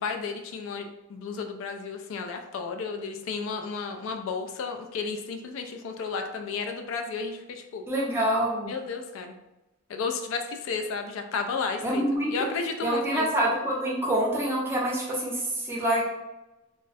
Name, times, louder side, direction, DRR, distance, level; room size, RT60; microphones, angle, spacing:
voice 1, 0.0-7.8 8.7-9.3 9.9-13.3, left 5 dB, 85° left, 6 dB, 0.3 m, -33 dB
voice 2, 7.9-8.7 11.8-12.3 12.8-16.0, right 1 dB, 10° right, -4 dB, 0.5 m, -26 dB
2.3 x 2.0 x 2.6 m, 0.99 s
head